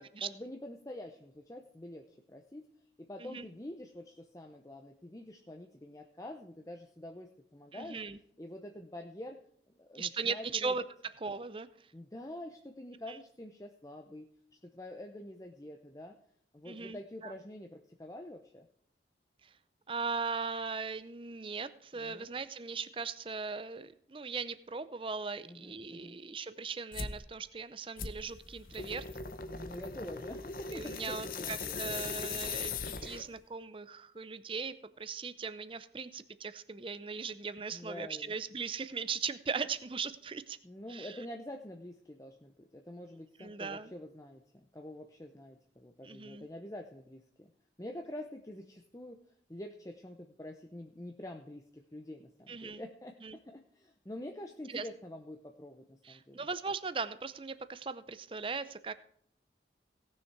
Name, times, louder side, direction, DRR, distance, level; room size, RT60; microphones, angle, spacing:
voice 1, 0.0-2.7 3.0-8.0 8.4-9.4 9.7-10.7 11.9-14.3 14.6-16.2 16.5-18.7 21.9-22.3 25.4-26.2 29.5-32.1 37.7-38.3 40.6-47.5 47.8-49.2 49.5-56.5, left 1 dB, 20° left, 4 dB, 0.7 m, -46 dB
voice 2, 7.7-8.2 9.9-11.7 13.1-13.2 16.6-17.3 19.9-29.1 30.7-32.7 33.0-40.6 40.9-41.2 43.4-43.9 46.0-46.5 52.5-52.8 53.2-53.4 54.7-54.9 56.0-58.9, right 5 dB, 30° right, 14 dB, 0.6 m, -39 dB
sound 1, 26.9-27.2 28.0-33.4, left 5 dB, 50° left, 0.8 m, -39 dB
17.5 x 6.5 x 4.7 m, 0.66 s
head